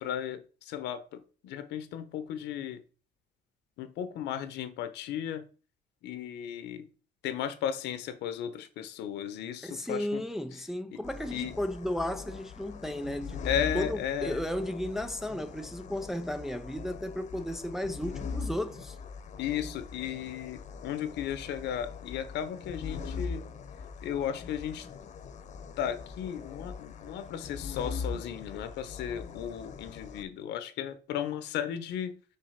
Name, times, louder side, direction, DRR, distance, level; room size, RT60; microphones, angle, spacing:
voice 1, 0.0-2.8 3.8-5.4 6.0-6.9 7.2-10.2 10.9-11.0 11.3-11.6 13.4-14.4 19.4-23.4 24.0-24.9 25.8-32.1, left 9 dB, 75° left, 1.0 m, -35 dB
voice 2, 9.6-13.4 13.7-19.0, left 1 dB, ahead, 0.4 m, -34 dB
sound 1, 11.0-30.2, left 5 dB, 45° left, 0.9 m, -41 dB
5.5 x 4.2 x 5.7 m
cardioid pair, 150°, 18 cm